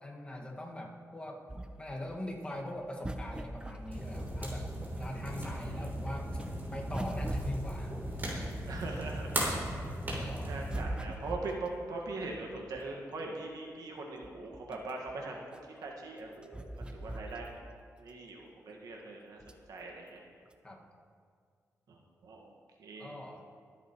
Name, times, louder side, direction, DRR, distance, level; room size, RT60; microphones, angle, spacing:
voice 1, 0.0-4.7 5.0-6.4 6.7-8.0 10.1-10.6 20.6-20.8 23.0-23.4, left 1 dB, 20° left, -1 dB, 1.8 m, -42 dB
sound 1, 1.5-5.2 5.6-9.7 10.1-13.1 13.6-13.7 14.0-17.8 18.1-18.2 19.4-19.8 20.5-20.6, right 1 dB, 15° right, 0.7 m, -42 dB
sound 2, 3.9-10.8, right 1 dB, 35° right, 3.2 m, -37 dB
voice 2, 5.2-5.9 8.7-9.6 10.4-15.4 15.8-17.4 18.0-19.4 19.7-20.2 21.9-22.5 22.8-23.1, right 3 dB, 85° right, 0 dB, 1.6 m, -41 dB
23.5 x 8.1 x 3.1 m, 2.1 s
cardioid pair, 95°, 6 cm